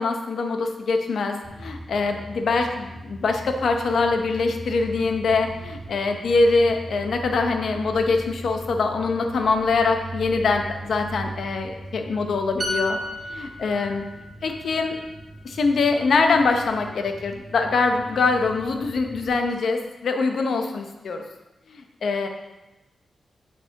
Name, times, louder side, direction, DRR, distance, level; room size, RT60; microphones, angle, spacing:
voice 1, 0.0-13.0 13.3-14.0 14.4-15.0 15.4-21.2 21.7-22.3, left 4 dB, 65° left, 4 dB, 0.8 m, -23 dB
sound 1, 1.4-19.3, right 1 dB, 5° right, 1.5 m, -40 dB
sound 2, 12.6-16.2 16.5-16.8, left 1 dB, 35° right, 1.1 m, -34 dB
8.4 x 4.7 x 4.0 m, 1.0 s
wide cardioid pair, 135°, 0 cm